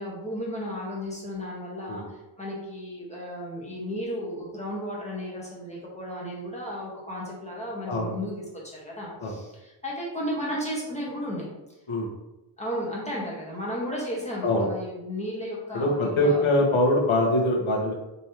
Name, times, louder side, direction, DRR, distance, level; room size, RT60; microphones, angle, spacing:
voice 1, 0.0-11.5 12.6-16.5, equal, 15° left, -5 dB, 1.3 m, -34 dB
voice 2, 15.7-17.9, left 1 dB, 75° left, -1 dB, 1.2 m, -23 dB
5.3 x 3.3 x 2.9 m, 0.96 s
wide cardioid pair, 155°, 48 cm